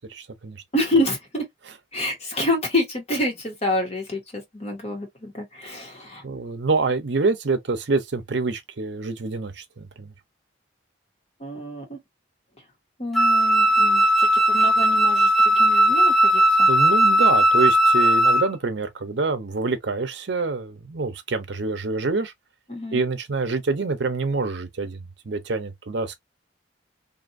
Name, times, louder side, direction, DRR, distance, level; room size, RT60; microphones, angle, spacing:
voice 1, 0.1-0.6 6.2-10.1 16.7-22.3 22.9-26.2, right 3 dB, 65° right, 0.7 m, -26 dB
voice 2, 0.7-1.4 1.9-6.2 11.4-12.0 13.0-16.7 22.7-23.0, left 1 dB, 35° left, 1.2 m, -27 dB
Wind instrument woodwind instrument, 13.1-18.5, right 1 dB, ahead, 0.4 m, -17 dB
2.7 x 2.5 x 2.6 m
head